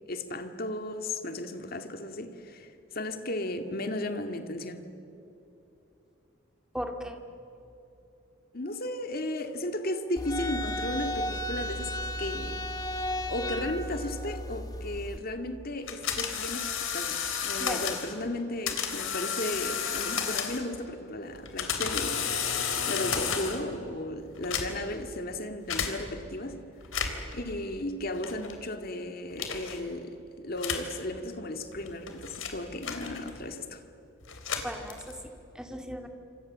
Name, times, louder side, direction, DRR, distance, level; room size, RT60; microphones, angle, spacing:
voice 1, 0.1-4.8 8.5-11.9 12.2-12.6 13.3-22.3 22.9-26.6 27.3-33.8, left 1 dB, 50° left, 2.0 m, -35 dB
voice 2, 6.7-7.2 17.6-17.8 34.6-35.2 35.5-36.1, equal, 5° right, 2.2 m, -36 dB
sound 1, 10.2-15.2, left 1 dB, 20° left, 2.1 m, -34 dB
sound 2, 15.9-18.1 18.7-20.8 21.3-23.7 24.3-25.0 25.7-25.9 26.8-27.3 28.2-28.6 29.4-29.8 30.6-30.9 31.7-33.5 34.2-35.3, left 7 dB, 85° left, 3.4 m, -32 dB
28.0 x 26.5 x 7.4 m
head